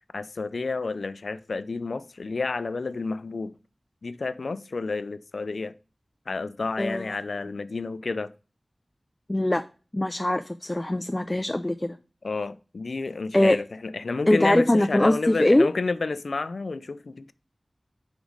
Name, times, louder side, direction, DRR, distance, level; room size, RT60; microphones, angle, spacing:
voice 1, 0.1-3.5 4.0-5.7 6.3-8.3 12.2-17.3, left 3 dB, 90° left, 0.4 m, -30 dB
voice 2, 6.8-7.1 9.3-9.6 9.9-12.0 13.3-13.6 14.3-15.7, left 1 dB, 25° left, 0.4 m, -22 dB
5.1 x 5.0 x 5.2 m
wide cardioid pair, 60°, 0 cm